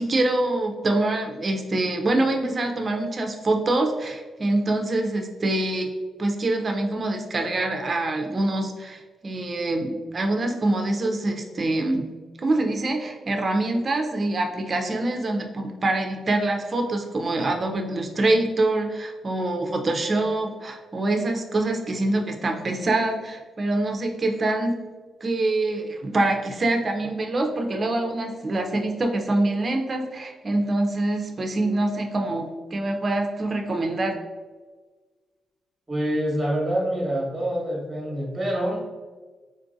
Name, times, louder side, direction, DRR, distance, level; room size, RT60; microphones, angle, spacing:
voice 1, 0.0-5.9 6.2-12.1 12.4-24.8 25.2-34.2, right 2 dB, 35° right, 3 dB, 0.5 m, -25 dB
voice 2, 35.9-38.9, right 1 dB, 20° right, -3 dB, 1.1 m, -26 dB
3.8 x 2.5 x 2.6 m, 1.4 s
cardioid pair, 100°, 0 cm